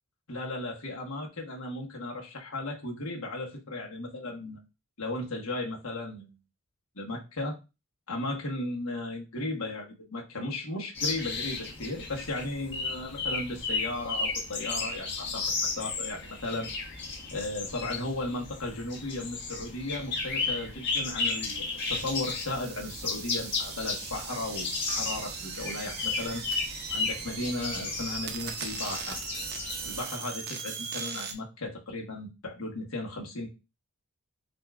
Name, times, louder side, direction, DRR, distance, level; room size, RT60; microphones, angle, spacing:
voice 1, 0.3-4.6 5.0-6.3 7.0-7.6 8.1-16.7 17.3-24.7 25.0-26.4 26.9-29.2 29.8-33.5, left 2 dB, 75° left, 0 dB, 1.3 m, -35 dB
sound 1, 10.9-30.0, left 4 dB, 50° left, 1.5 m, -34 dB
sound 2, 21.2-31.3, right 6 dB, 45° right, 0.6 m, -39 dB
6.6 x 2.6 x 2.4 m, 0.27 s
head